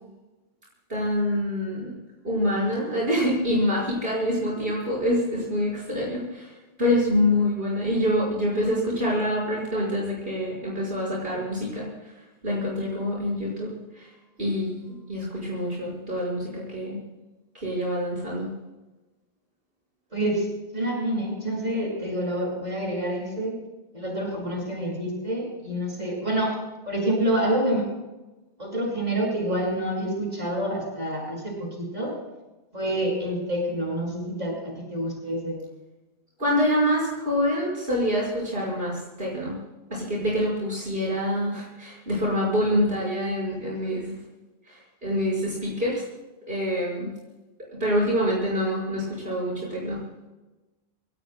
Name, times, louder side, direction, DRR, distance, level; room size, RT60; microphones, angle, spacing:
voice 1, 0.9-1.9 2.2-11.9 12.4-14.1 14.4-17.0 17.5-18.5 36.4-39.6 39.9-44.1 44.7-46.0 46.5-47.1 47.7-50.0, equal, 60° right, -5 dB, 5.9 m, -26 dB
voice 2, 20.1-20.5 20.7-23.6 23.9-26.6 26.9-27.9 28.6-32.1 32.7-35.6, right 1 dB, 40° right, -2 dB, 7.1 m, -27 dB
28.5 x 18.0 x 2.3 m, 1.1 s
omnidirectional pair, 1.1 m